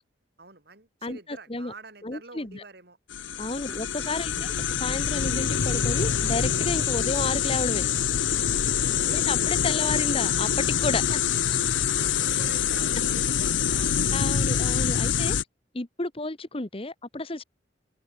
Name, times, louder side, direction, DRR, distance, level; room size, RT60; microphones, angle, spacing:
voice 1, 0.4-3.0 3.6-3.9 8.9-9.3 11.7-14.1 14.7-15.0, right 3 dB, 55° right, 4.2 m, -46 dB
voice 2, 1.0-1.7 2.0-2.6 3.4-7.8 9.1-11.3 14.1-15.4 15.7-17.4, left 2 dB, 30° left, 1.3 m, -32 dB
sound 1, 3.1-15.4, left 8 dB, 85° left, 0.8 m, -25 dB
open air
head